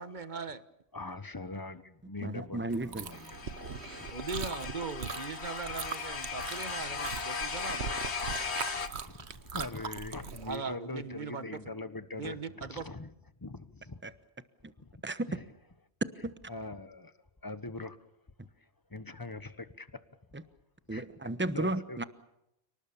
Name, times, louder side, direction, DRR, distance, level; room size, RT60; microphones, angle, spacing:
voice 1, 0.0-0.6 4.1-8.0 10.4-11.6 12.1-12.9, right 5 dB, 45° right, 1.4 m, -40 dB
voice 2, 0.9-4.1 8.5-13.1 13.4-14.0 14.8-14.9 15.3-15.4 16.5-17.1 17.4-18.0 18.9-20.0 20.9-21.0 21.5-22.0, left 2 dB, 20° left, 1.2 m, -42 dB
voice 3, 2.2-3.1 14.0-14.1 15.0-15.3 16.2-16.3 20.3-20.4 20.9-22.0, right 2 dB, 10° right, 1.0 m, -33 dB
Chewing mastication, 2.7-10.5, right 6 dB, 80° right, 1.5 m, -41 dB
sound 1, 3.1-8.9, left 5 dB, 75° left, 1.9 m, -37 dB
29.5 x 19.5 x 7.2 m
omnidirectional pair, 1.1 m